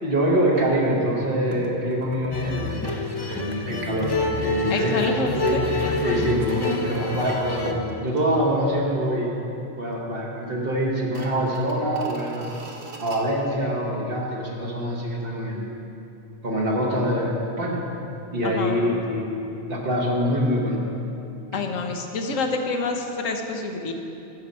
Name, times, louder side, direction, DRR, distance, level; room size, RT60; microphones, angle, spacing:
voice 1, 0.0-3.0 3.3-4.1 4.4-5.6 6.0-9.3 9.8-12.5 13.0-15.7 16.4-17.8 18.3-19.3 19.7-20.8 21.5-21.6, equal, 50° right, -2 dB, 1.4 m, -25 dB
sound 1, 0.5-0.7 1.5-3.1 3.4-8.7 9.0-9.1 9.5-10.1 10.3-10.4 11.0-13.2, right 3 dB, 70° right, 1.2 m, -40 dB
sound 2, 2.3-7.7, left 2 dB, 30° left, 0.4 m, -27 dB
voice 2, 4.7-5.7 18.4-18.8 21.5-23.9, left 4 dB, 90° left, 4 dB, 1.2 m, -27 dB
9.4 x 7.2 x 5.4 m, 2.9 s
omnidirectional pair, 1.3 m